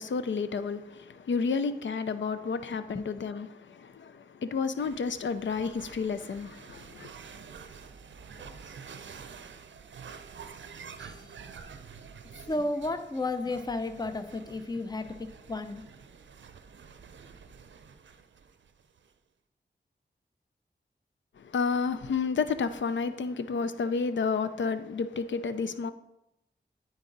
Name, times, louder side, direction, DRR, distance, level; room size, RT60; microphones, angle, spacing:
voice 1, 0.0-7.1 21.4-25.9, left 5 dB, 80° left, 0.5 m, -31 dB
sound 1, 4.8-19.1, right 6 dB, 80° right, 0.5 m, -48 dB
voice 2, 12.5-15.8, left 2 dB, 20° left, 0.6 m, -33 dB
9.5 x 3.9 x 4.0 m
cardioid pair, 60°, 19 cm